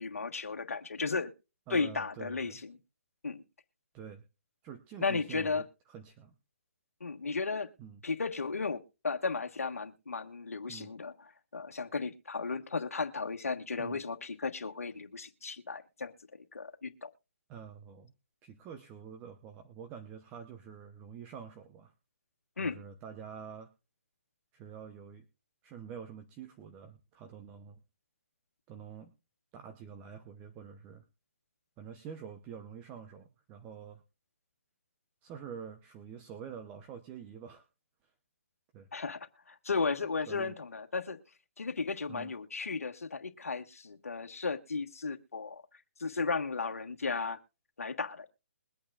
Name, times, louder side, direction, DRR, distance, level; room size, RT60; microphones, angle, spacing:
voice 1, 0.0-1.3 1.7-2.7 3.2-3.4 5.0-5.6 7.0-7.7 8.0-11.1 11.5-16.1 16.5-17.1 22.6-22.8 38.9-41.2 41.6-45.6 46.0-47.4 47.8-48.3, left 4 dB, 85° left, 5 dB, 1.4 m, -35 dB
voice 2, 1.7-2.6 3.9-4.2 4.6-6.3 7.8-8.0 10.7-10.9 13.8-14.0 17.5-18.1 18.4-21.9 22.6-23.7 24.5-25.3 25.6-27.8 28.7-29.1 29.5-31.0 31.8-34.0 35.2-37.7 38.0-38.1 38.7-38.9 40.3-40.5 42.1-42.3, right 7 dB, 20° right, 8 dB, 0.9 m, -47 dB
22.0 x 8.6 x 2.5 m, 0.32 s
hypercardioid pair, 150°, 8 cm